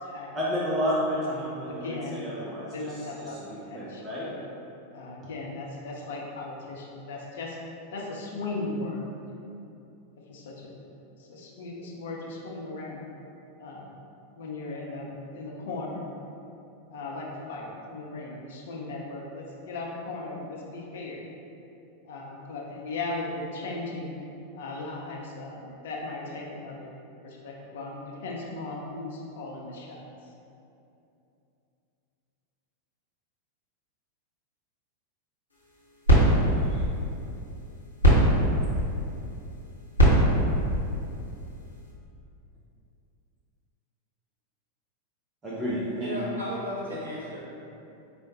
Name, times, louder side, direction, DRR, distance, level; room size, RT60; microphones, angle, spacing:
voice 1, 0.3-4.3 36.7-36.8 45.4-46.2, equal, 20° right, -7 dB, 0.6 m, -31 dB
voice 2, 1.2-4.4 4.9-7.6 7.9-9.0 10.3-10.7 11.2-13.0 13.6-14.0 14.4-16.0 16.9-21.2 22.0-24.1 24.5-26.9 27.2-30.1, left 2 dB, 60° left, -2 dB, 0.5 m, -37 dB
sound 1, 35.5-41.9, right 1 dB, 80° left, 0.9 m, -24 dB
voice 3, 46.0-47.4, equal, 75° right, -7 dB, 0.9 m, -34 dB
4.7 x 2.1 x 2.7 m, 2.8 s
figure-of-eight pair, 90°, 0 cm